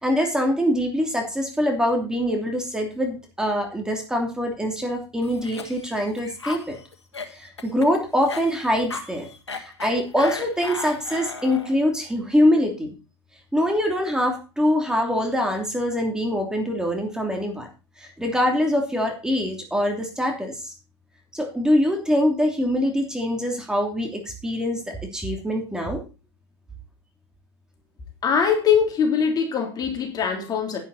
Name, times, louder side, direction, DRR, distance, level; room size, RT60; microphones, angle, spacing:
voice 1, 0.0-6.8 7.3-9.3 9.5-12.9 13.5-17.7 18.0-20.7 21.3-26.0, equal, 5° right, 2 dB, 2.9 m, -24 dB
Cough, 5.2-11.8, left 4 dB, 90° left, 1.5 m, -36 dB
voice 2, 28.2-30.8, left 7 dB, 30° left, 3 dB, 3.4 m, -22 dB
11.0 x 10.0 x 4.2 m, 0.31 s
hypercardioid pair, 95°, 14 cm